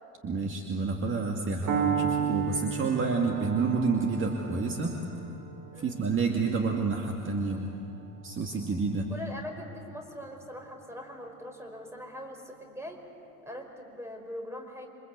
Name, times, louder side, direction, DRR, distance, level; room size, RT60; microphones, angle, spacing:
voice 1, 0.2-4.9 5.8-7.7 8.2-9.1, right 4 dB, 30° right, 2 dB, 2.4 m, -29 dB
Piano, 1.7-9.6, right 7 dB, 50° right, 2.7 m, -35 dB
voice 2, 9.1-13.0 13.4-14.9, left 1 dB, 5° right, 3 dB, 5.1 m, -42 dB
28.0 x 24.5 x 8.3 m, 2.8 s
figure-of-eight pair, 70°, 42 cm